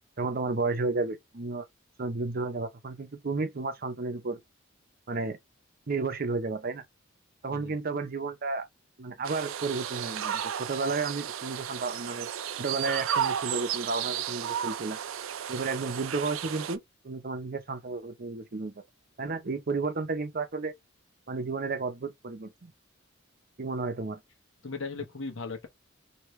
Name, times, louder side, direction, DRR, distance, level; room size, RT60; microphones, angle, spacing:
voice 1, 0.2-1.7 2.0-4.4 5.1-5.4 5.9-6.8 7.4-8.7 9.0-12.3 12.6-15.0 15.5-16.8 17.0-18.8 19.2-20.7 21.3-22.7 23.6-24.2, right 3 dB, 50° right, 0.7 m, -32 dB
sound 1, 9.2-16.8, right 9 dB, 85° right, 0.4 m, -33 dB
voice 2, 24.6-25.7, left 4 dB, 70° left, 1.0 m, -37 dB
3.2 x 2.8 x 3.1 m
head